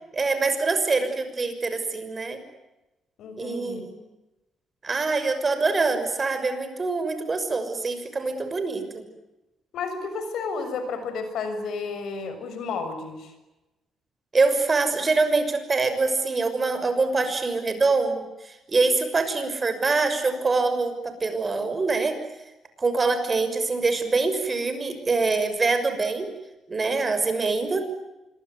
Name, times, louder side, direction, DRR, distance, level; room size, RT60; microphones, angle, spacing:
voice 1, 0.1-2.4 3.4-4.0 4.8-9.0 14.3-22.2 22.8-26.3 26.7-27.8, right 3 dB, 30° right, 9 dB, 6.3 m, -24 dB
voice 2, 3.2-3.8 9.7-13.3, left 4 dB, 75° left, 9 dB, 6.6 m, -32 dB
26.5 x 23.0 x 9.5 m, 1.0 s
cardioid pair, 90°, 0 cm